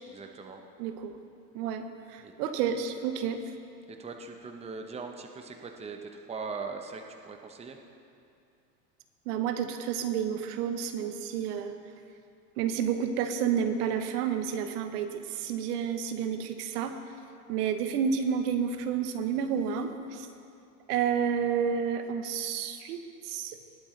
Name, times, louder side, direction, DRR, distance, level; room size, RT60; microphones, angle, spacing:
voice 1, 0.1-0.6 2.2-2.3 3.9-7.8, right 4 dB, 15° right, 4 dB, 0.8 m, -40 dB
voice 2, 0.8-1.2 1.5-3.4 9.3-11.8 12.6-16.9 17.5-20.3 20.9-23.6, right 7 dB, 75° right, 8 dB, 1.0 m, -30 dB
19.5 x 8.6 x 3.2 m, 2.5 s
supercardioid pair, 115°, 47 cm